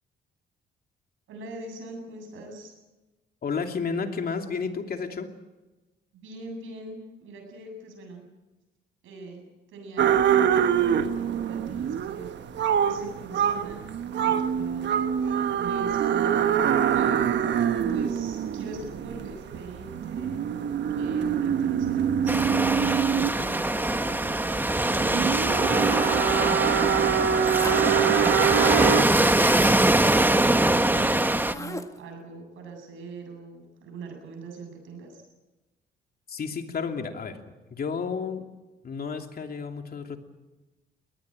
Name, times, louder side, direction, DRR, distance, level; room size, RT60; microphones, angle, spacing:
voice 1, 1.3-2.7 6.1-8.3 9.0-9.4 9.7-14.9 15.6-20.4 21.0-25.8 26.1-35.2, right 3 dB, 85° right, 3 dB, 8.0 m, -42 dB
voice 2, 3.4-5.3 36.3-37.4 37.7-38.4 38.8-40.2, left 5 dB, 50° left, 4 dB, 2.9 m, -31 dB
sound 1, 10.0-29.0, right 8 dB, 65° right, 1.3 m, -25 dB
Waves surf, 22.3-31.5, right 1 dB, 10° right, 1.1 m, -23 dB
sound 2, 27.5-28.0 28.4-28.5 28.7-29.8 31.1-32.1, left 2 dB, 15° left, 1.6 m, -38 dB
21.5 x 19.5 x 9.1 m, 1.1 s
cardioid pair, 90°, 20 cm